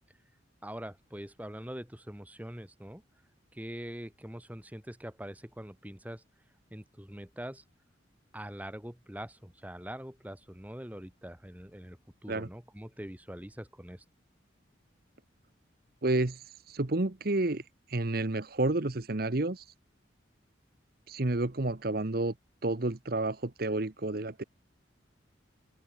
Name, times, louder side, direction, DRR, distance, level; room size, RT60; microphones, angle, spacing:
voice 1, 0.6-3.0 3.5-6.2 6.7-7.6 8.3-14.0, equal, 10° right, 1.8 m, -43 dB
voice 2, 16.0-17.6 17.9-19.6 21.1-22.3 22.6-24.4, right 2 dB, 55° right, 1.1 m, -30 dB
open air
head